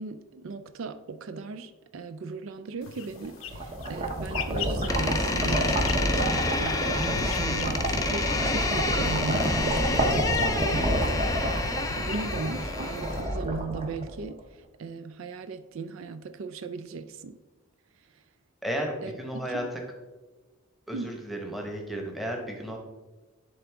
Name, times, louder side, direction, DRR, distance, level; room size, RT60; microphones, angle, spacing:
voice 1, 0.0-11.2 12.0-17.4 18.0-18.2 19.0-19.1 19.5-19.7 20.9-21.1, right 4 dB, 70° right, 0.4 m, -37 dB
sound 1, 2.8-13.2, left 6 dB, 75° left, 0.6 m, -42 dB
sound 2, 3.2-14.4, right 1 dB, 30° right, 0.9 m, -28 dB
Door, 4.9-13.4, left 3 dB, 15° left, 0.5 m, -30 dB
voice 2, 18.6-19.6 20.9-22.8, equal, ahead, 1.0 m, -33 dB
10.5 x 3.7 x 3.5 m
head